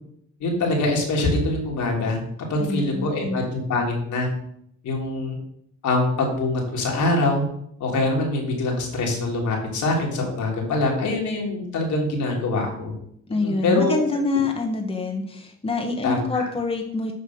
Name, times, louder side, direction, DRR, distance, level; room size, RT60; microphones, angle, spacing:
voice 1, 0.4-2.2 2.5-4.3 4.8-5.4 5.8-7.4 7.8-12.9 13.4-13.9 16.0-16.4, left 2 dB, 70° left, -1 dB, 3.3 m, -24 dB
voice 2, 2.6-3.4 13.3-17.1, left 3 dB, 20° left, 2 dB, 1.4 m, -26 dB
8.6 x 5.6 x 6.2 m, 0.71 s
cardioid pair, 90°, 30 cm